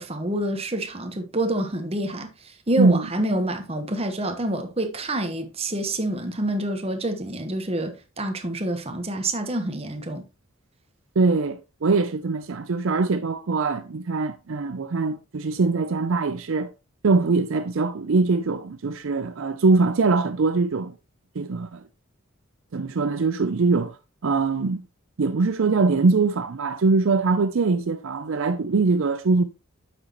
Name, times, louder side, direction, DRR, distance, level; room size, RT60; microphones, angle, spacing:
voice 1, 0.0-10.2, right 1 dB, 30° right, 1.1 m, -27 dB
voice 2, 11.2-16.7 17.0-20.9 21.4-21.8 22.7-24.0 24.2-24.8 25.2-29.4, right 3 dB, 65° right, 0.5 m, -22 dB
8.8 x 6.1 x 3.0 m
head